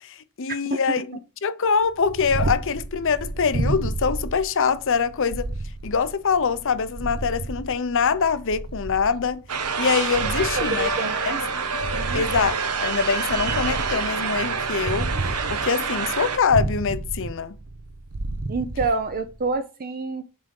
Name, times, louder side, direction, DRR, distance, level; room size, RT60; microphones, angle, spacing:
voice 1, 0.0-5.5 5.8-9.4 9.8-11.4 12.1-15.1 15.5-17.6, left 5 dB, 60° left, 0.7 m, -24 dB
Purr, 1.8-19.5, right 2 dB, 70° right, 0.8 m, -32 dB
sound 1, 9.5-16.4, right 5 dB, 85° right, 1.1 m, -27 dB
voice 2, 10.4-11.4 11.9-12.2 18.5-20.2, right 3 dB, 40° right, 0.6 m, -28 dB
7.4 x 3.6 x 5.3 m
head